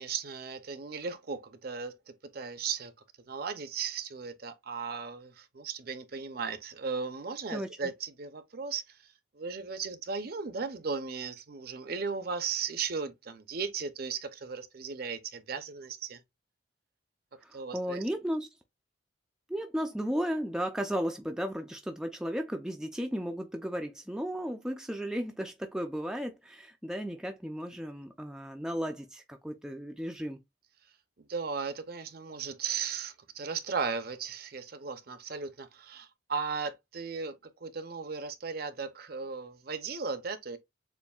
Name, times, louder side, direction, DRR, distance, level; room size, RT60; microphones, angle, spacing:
voice 1, 0.0-2.9 3.3-9.0 9.3-16.2 17.5-18.0 31.3-40.6, right 5 dB, 50° right, 0.6 m, -36 dB
voice 2, 17.4-18.5 19.5-30.4, equal, 5° right, 0.4 m, -34 dB
6.9 x 2.6 x 2.3 m
head